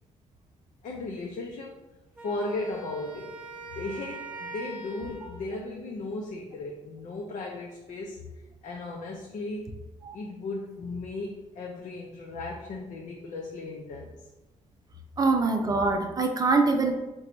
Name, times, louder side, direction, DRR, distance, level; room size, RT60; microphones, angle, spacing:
voice 1, 0.8-1.8 2.2-3.3 3.7-8.3 8.6-9.8 10.1-14.1, left 2 dB, 65° left, -1 dB, 0.6 m, -36 dB
Wind instrument woodwind instrument, 2.2-5.5, right 2 dB, 10° right, 1.4 m, -42 dB
voice 2, 15.2-16.9, right 3 dB, 30° right, 4 dB, 0.5 m, -24 dB
4.5 x 2.2 x 3.9 m, 1.1 s
cardioid pair, 145°, 13 cm